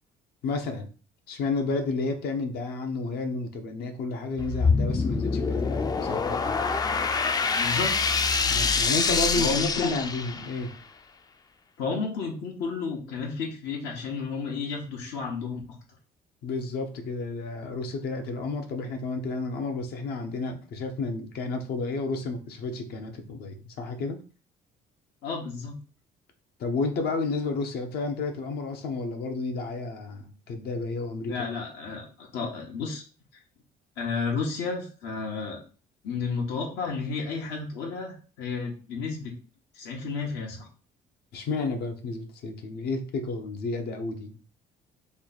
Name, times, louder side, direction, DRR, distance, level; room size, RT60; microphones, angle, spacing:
voice 1, 0.4-0.9 1.3-6.6 8.5-10.7 16.4-24.2 26.6-31.3 41.3-44.3, left 3 dB, 70° left, 5 dB, 0.7 m, -31 dB
sound 1, 4.4-10.7, left 4 dB, 25° left, 0.3 m, -25 dB
voice 2, 7.5-7.9 9.4-9.9 11.8-15.6 25.2-25.7 31.3-33.0 34.0-35.6 36.0-39.3 39.7-40.7, left 4 dB, 85° left, -1 dB, 1.1 m, -32 dB
3.2 x 2.3 x 4.0 m, 0.37 s
cardioid pair, 110°, 17 cm